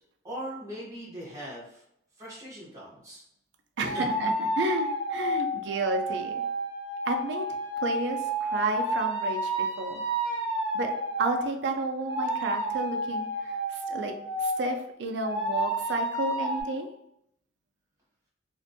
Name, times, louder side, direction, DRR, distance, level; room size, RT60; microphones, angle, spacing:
voice 1, 0.2-1.8 2.2-3.2 3.9-4.1, equal, 15° right, -7 dB, 0.7 m, -40 dB
sound 1, 3.8-11.5 12.1-14.8 15.2-16.6, right 1 dB, 30° left, 0.6 m, -30 dB
voice 2, 3.8-6.4 7.1-7.5 7.8-10.0 10.7-16.9, right 3 dB, 65° right, 5 dB, 0.4 m, -32 dB
2.5 x 2.1 x 2.6 m, 0.78 s
head